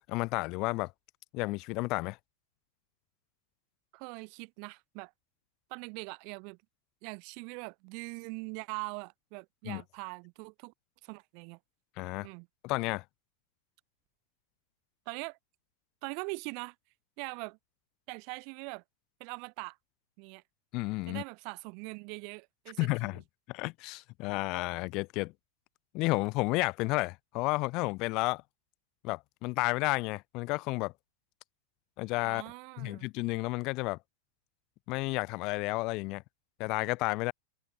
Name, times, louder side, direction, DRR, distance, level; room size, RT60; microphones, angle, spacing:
voice 1, 0.1-0.9 1.3-2.2 9.6-9.8 12.0-12.3 12.6-13.0 20.7-21.2 22.8-23.2 23.5-25.3 25.9-28.4 29.0-30.9 32.0-32.4 32.8-34.0 34.9-36.2 36.6-37.3, left 24 dB, 40° left, 1.6 m, -31 dB
voice 2, 3.9-5.1 5.7-6.6 7.0-10.7 11.0-11.6 12.2-12.5 15.0-15.4 16.0-16.7 17.2-17.6 18.1-18.8 19.2-19.8 20.2-20.4 21.1-23.2 32.2-33.1, right 38 dB, 45° right, 6.8 m, -42 dB
open air
figure-of-eight pair, 90°, 0 cm